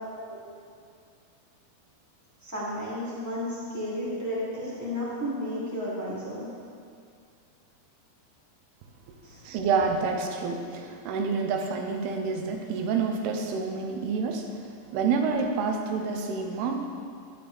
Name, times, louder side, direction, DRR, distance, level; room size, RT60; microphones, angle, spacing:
voice 1, 2.4-6.5 9.2-9.4, left 1 dB, 5° right, -9 dB, 2.2 m, -33 dB
voice 2, 9.4-14.5 14.9-16.9, right 5 dB, 85° right, 4 dB, 2.9 m, -28 dB
12.0 x 10.5 x 3.5 m, 2.3 s
omnidirectional pair, 4.5 m